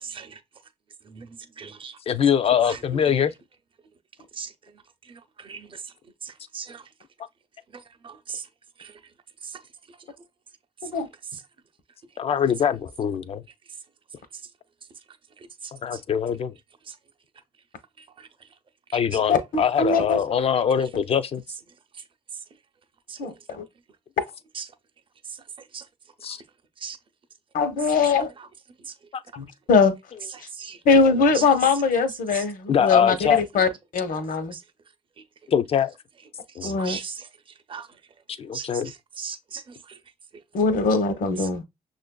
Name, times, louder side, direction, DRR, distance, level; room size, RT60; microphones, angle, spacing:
voice 1, 0.0-0.4 1.1-1.3 1.6-1.9 2.7-2.8 4.4-4.5 5.4-5.7 6.2-6.8 8.0-8.4 8.8-8.9 23.1-23.2 24.6-24.7 25.7-25.8 26.8-27.0 30.6-30.8 31.3-31.4 32.3-32.4 34.5-34.6 36.6-37.2 37.7-37.9 38.5-38.7 39.2-39.6, right 6 dB, 35° right, 0.6 m, -36 dB
voice 2, 2.1-3.3 12.2-13.4 15.8-16.5 18.9-21.4 26.2-26.4 29.1-29.2 30.9-31.1 32.7-33.4 35.5-35.9 36.6-36.8 38.4-38.9, left 8 dB, 40° left, 0.4 m, -23 dB
voice 3, 19.3-20.2 23.2-23.6 27.5-28.3 29.4-29.9 30.9-33.2 33.5-33.7 33.9-34.5 36.6-37.0 40.5-41.6, left 4 dB, 65° left, 0.9 m, -21 dB
6.2 x 2.5 x 2.2 m
cardioid pair, 120°, 15 cm